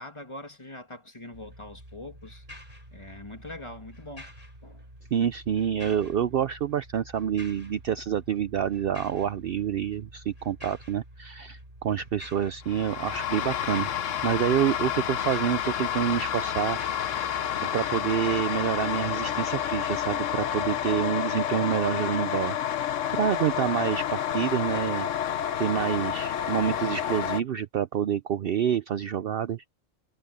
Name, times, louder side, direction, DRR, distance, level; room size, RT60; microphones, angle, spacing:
voice 1, 0.0-2.5 2.9-4.3 4.6-4.9 23.9-24.1, left 1 dB, 25° left, 2.0 m, -43 dB
sound 1, 1.3-21.1, equal, 45° right, 8.2 m, -48 dB
voice 2, 5.1-13.9 14.2-17.4 17.7-22.6 23.1-25.1 25.6-29.6, right 9 dB, 60° right, 0.7 m, -27 dB
sound 2, 12.7-27.4, left 10 dB, 80° left, 1.2 m, -29 dB
omnidirectional pair, 1.3 m